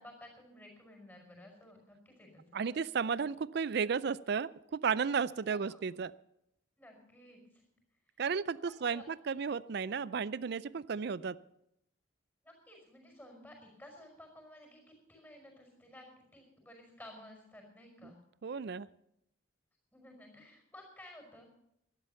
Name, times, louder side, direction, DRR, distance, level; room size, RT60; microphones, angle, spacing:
voice 1, 0.0-2.8 5.4-5.9 6.8-7.4 8.6-9.0 12.4-16.1 16.3-18.2 19.9-21.5, left 1 dB, 10° left, 1 dB, 5.2 m, -54 dB
voice 2, 2.5-6.1 8.2-11.4 18.0-18.1 18.4-18.9, right 6 dB, 55° right, 19 dB, 0.4 m, -34 dB
13.0 x 11.0 x 6.9 m, 0.78 s
head